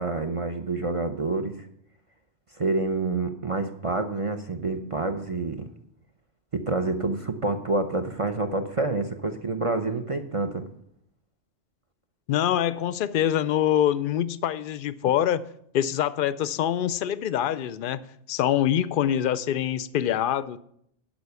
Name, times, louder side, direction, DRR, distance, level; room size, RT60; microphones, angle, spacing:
voice 1, 0.0-1.5 2.6-5.6 6.5-10.6, right 3 dB, 35° right, 0.6 m, -27 dB
voice 2, 12.3-15.4 15.7-18.0 18.3-20.6, left 10 dB, 60° left, 0.6 m, -25 dB
11.5 x 5.3 x 6.8 m
omnidirectional pair, 1.2 m